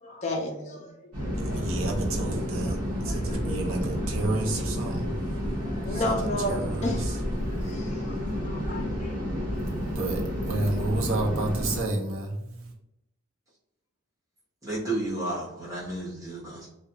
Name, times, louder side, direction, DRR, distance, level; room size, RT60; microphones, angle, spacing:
voice 1, 0.0-1.7 2.7-2.8 3.1-3.7 4.9-5.0 5.6-7.2 7.6-9.2, left 1 dB, 30° left, 0.3 m, -34 dB
sound 1, 1.1-11.8, equal, 85° right, 0.9 m, -30 dB
voice 2, 1.3-6.2 6.5-7.1 7.4-7.7 9.5-12.7, right 2 dB, 65° right, 0.5 m, -31 dB
voice 3, 14.6-16.7, right 2 dB, 15° right, 0.8 m, -32 dB
2.3 x 2.1 x 2.7 m
head